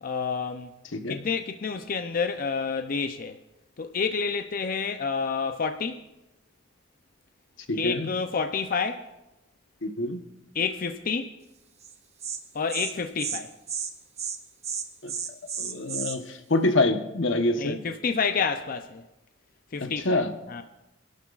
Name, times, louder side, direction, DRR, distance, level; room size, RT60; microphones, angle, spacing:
voice 1, 0.0-0.7 1.1-3.4 3.8-6.0 7.7-9.1 10.5-11.3 12.5-13.5 17.6-19.0 19.7-20.2 20.5-20.6, left 5 dB, 50° left, 0.6 m, -29 dB
voice 2, 7.7-8.1 9.8-10.2 15.0-15.1 15.6-17.8 19.8-20.3, left 2 dB, 85° left, 1.1 m, -26 dB
Insect, 11.8-11.9 12.2-12.4 12.7-12.9 13.2-13.4 13.7-13.9 14.2-14.4 14.6-16.2, right 7 dB, 35° right, 1.1 m, -32 dB
27.0 x 12.0 x 2.5 m
head